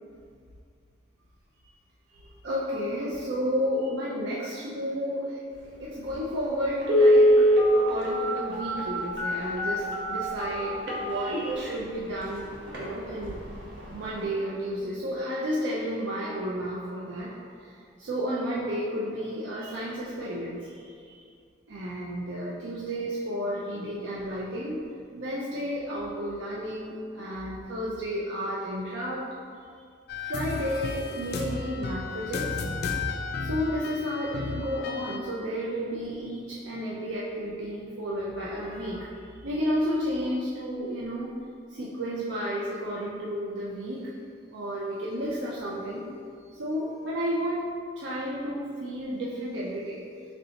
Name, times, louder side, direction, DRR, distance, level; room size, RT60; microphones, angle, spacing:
voice 1, 2.1-7.5 7.7-12.5 12.8-13.4 13.9-17.3 17.6-21.1 21.7-24.9 25.1-29.3 30.2-32.6 33.4-41.4 41.7-44.1 44.5-46.0 46.6-50.0, equal, 85° right, -5 dB, 0.5 m, -32 dB
Telephone, 6.1-6.2 6.8-11.7 12.2-12.3 12.7-12.9 13.2-13.5 13.8-13.9, equal, 70° right, 0.8 m, -22 dB
sound 1, 30.1-35.2, left 4 dB, 55° left, 0.3 m, -33 dB
4.0 x 3.2 x 2.8 m, 2.2 s
head